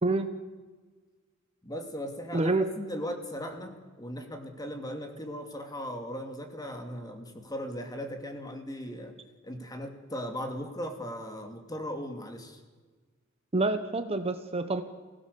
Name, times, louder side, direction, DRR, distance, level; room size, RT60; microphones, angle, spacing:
voice 1, 1.6-9.1 9.4-12.6, equal, 20° left, 5 dB, 2.3 m, -38 dB
voice 2, 2.3-2.7 13.5-14.8, right 2 dB, 30° right, 9 dB, 0.9 m, -27 dB
24.0 x 16.5 x 6.9 m, 1.4 s
head